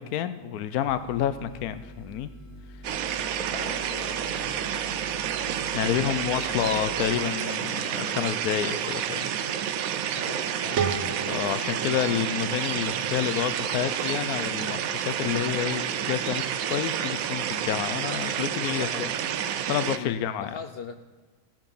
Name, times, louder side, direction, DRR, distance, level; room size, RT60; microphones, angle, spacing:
voice 1, 0.0-2.3 5.7-9.3 9.9-10.0 11.3-16.4 16.7-19.1 19.7-20.5, left 10 dB, 85° left, 12 dB, 1.1 m, -29 dB
sound 1, 0.9-7.1, equal, 35° left, 2.4 m, -46 dB
sound 2, 2.8-20.0, right 9 dB, 75° right, 1.1 m, -29 dB
voice 2, 3.5-5.0 6.0-6.7 7.6-7.9 10.1-10.9 11.4-11.5 18.6-19.1 19.9-21.0, left 6 dB, 60° left, 8 dB, 0.6 m, -41 dB
sound 3, 10.8-13.6, right 6 dB, 55° right, 1.0 m, -33 dB
16.5 x 7.6 x 5.4 m, 1.3 s
omnidirectional pair, 1.5 m